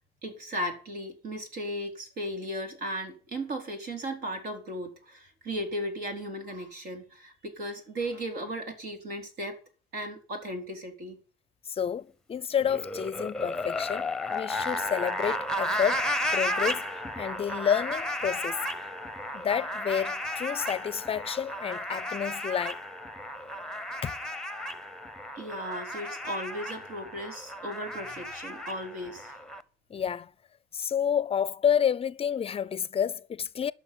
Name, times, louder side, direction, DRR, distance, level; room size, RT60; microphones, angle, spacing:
voice 1, 0.2-9.6 9.9-11.2 25.4-29.4, equal, 70° right, 4.4 m, -36 dB
voice 2, 11.7-18.6 19.3-22.8 24.0-24.2 29.9-30.3 30.7-33.7, left 8 dB, 35° left, 0.5 m, -29 dB
sound 1, 12.6-29.6, left 1 dB, 5° left, 0.9 m, -34 dB
12.5 x 6.3 x 9.6 m
cardioid pair, 110°, 17 cm